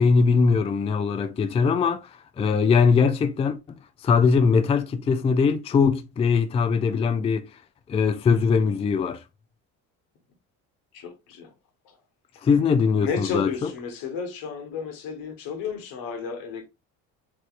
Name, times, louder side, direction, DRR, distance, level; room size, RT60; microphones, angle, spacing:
voice 1, 0.0-2.1 2.4-3.6 4.0-7.5 7.9-9.2 12.4-13.7, left 5 dB, 20° left, 0.3 m, -21 dB
voice 2, 10.9-11.5 11.8-12.0 13.0-16.7, left 6 dB, 80° left, 1.2 m, -32 dB
4.4 x 3.1 x 2.4 m
cardioid pair, 110°, 34 cm